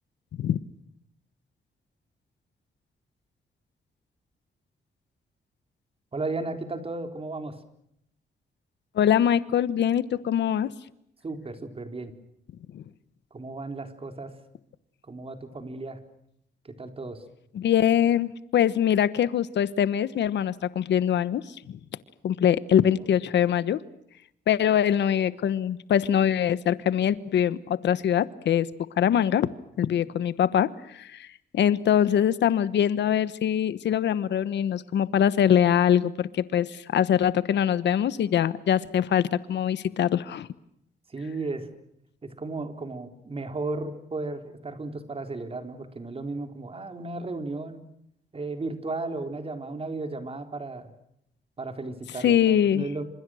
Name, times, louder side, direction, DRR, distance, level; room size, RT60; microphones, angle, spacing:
voice 1, 6.1-7.5 11.2-12.1 13.3-14.3 15.1-16.0 16.6-17.2 22.9-23.1 41.1-41.7 42.2-47.8 48.3-50.9 51.6-53.0, right 3 dB, 30° right, 7 dB, 4.0 m, -34 dB
voice 2, 8.9-10.7 12.7-12.8 17.5-21.8 22.2-23.8 24.5-28.7 29.0-29.5 29.8-31.3 31.5-40.5 52.2-52.8, left 9 dB, 80° left, 16 dB, 1.2 m, -23 dB
28.5 x 27.0 x 6.4 m, 0.74 s
cardioid pair, 95°, 18 cm